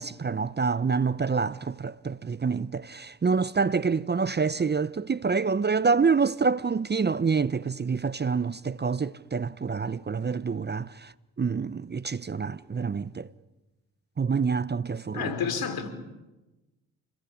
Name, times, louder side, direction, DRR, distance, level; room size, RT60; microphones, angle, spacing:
voice 1, 0.0-11.1 11.4-13.3 14.2-15.3, right 5 dB, 25° right, 0.8 m, -27 dB
voice 2, 15.1-15.9, left 6 dB, 65° left, 5.0 m, -29 dB
30.0 x 21.0 x 8.6 m
supercardioid pair, 55°, 39 cm